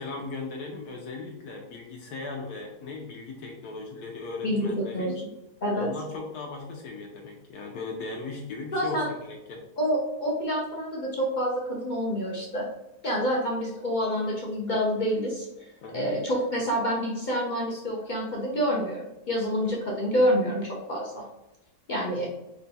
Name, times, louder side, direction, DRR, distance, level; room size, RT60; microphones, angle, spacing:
voice 1, 0.0-5.2 5.7-9.6 15.8-16.1, left 3 dB, 75° left, 0 dB, 1.1 m, -37 dB
voice 2, 4.4-5.1 5.6-5.9 8.7-9.1 9.8-12.6 13.0-15.7 15.9-21.3 21.9-22.3, equal, 55° left, -2 dB, 0.5 m, -27 dB
3.7 x 2.2 x 4.0 m, 0.90 s
omnidirectional pair, 1.7 m